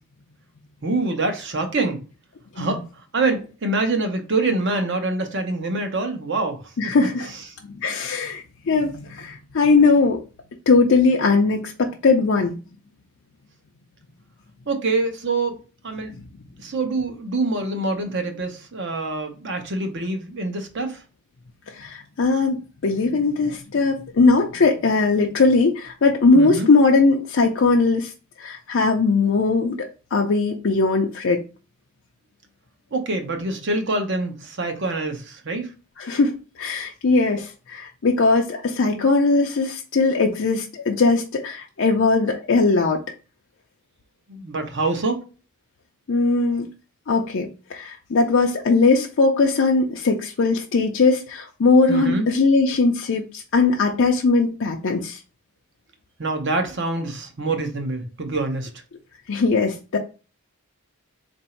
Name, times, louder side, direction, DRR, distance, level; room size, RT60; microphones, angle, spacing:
voice 1, 0.8-2.0 2.6-2.8 3.1-6.9 14.7-15.6 15.8-16.1 16.6-21.0 26.3-26.7 32.9-35.7 44.3-45.2 51.9-52.3 56.2-58.7, right 2 dB, 55° right, 0.8 m, -25 dB
voice 2, 6.8-7.3 7.8-10.2 10.7-12.6 21.7-28.1 28.4-31.4 36.0-36.3 36.6-43.0 46.1-46.7 47.1-55.2 59.3-60.0, left 3 dB, 55° left, 0.5 m, -19 dB
3.9 x 2.6 x 4.4 m
head